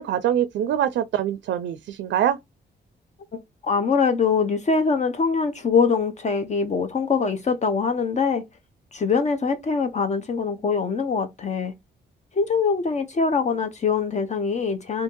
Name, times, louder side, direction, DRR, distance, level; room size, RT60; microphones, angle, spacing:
voice 1, 0.0-2.4, right 10 dB, 80° right, 0.4 m, -24 dB
voice 2, 3.3-8.4 8.9-11.7 12.3-15.0, left 5 dB, 40° left, 0.6 m, -23 dB
2.7 x 2.6 x 3.6 m
cardioid pair, 105°, 19 cm